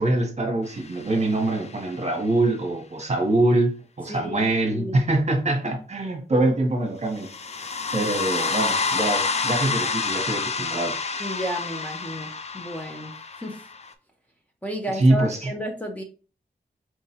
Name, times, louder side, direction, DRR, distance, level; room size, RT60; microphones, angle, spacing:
voice 1, 0.0-7.3 7.9-11.0 15.0-15.5, right 2 dB, 45° right, 1.0 m, -24 dB
sound 1, 0.9-1.9 7.2-13.9, left 4 dB, 40° left, 0.4 m, -28 dB
voice 2, 4.1-4.4 4.7-5.0 5.6-5.7 11.2-13.1 13.4-13.6 14.6-16.0, equal, 10° left, 0.7 m, -32 dB
4.6 x 3.1 x 2.8 m
wide cardioid pair, 115°, 16 cm